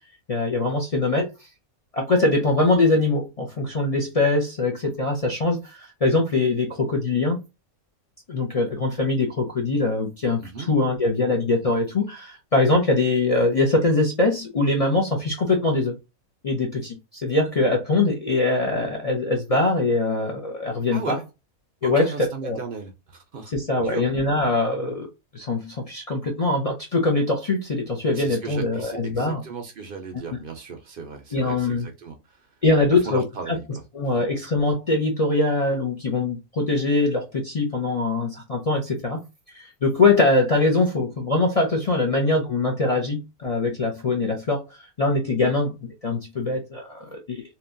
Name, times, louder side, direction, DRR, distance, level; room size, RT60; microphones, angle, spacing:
voice 1, 0.3-1.3 1.9-7.4 8.3-15.9 16.4-17.0 17.2-21.2 21.8-22.1 22.4-22.6 23.5-25.1 25.3-29.4 31.3-31.9 32.6-33.6 33.9-39.2 39.8-44.6 45.0-47.4, left 2 dB, 50° left, 0.4 m, -22 dB
voice 2, 20.9-21.3 21.8-24.1 28.1-32.5 33.0-33.8 34.1-34.2, right 5 dB, 60° right, 0.5 m, -36 dB
3.0 x 2.2 x 2.5 m
omnidirectional pair, 1.5 m